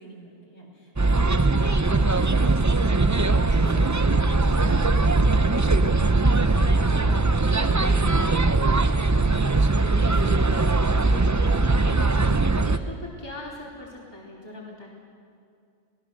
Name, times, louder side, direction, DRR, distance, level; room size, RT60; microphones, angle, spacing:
voice 1, 0.0-3.2 3.6-7.5, left 1 dB, 65° left, -2 dB, 5.4 m, -43 dB
sound 1, 1.0-12.8, right 3 dB, 25° right, 0.4 m, -20 dB
voice 2, 7.8-8.5 9.2-10.7 11.0-14.9, left 2 dB, 20° left, -4 dB, 3.1 m, -40 dB
26.0 x 17.5 x 6.6 m, 2.4 s
omnidirectional pair, 1.2 m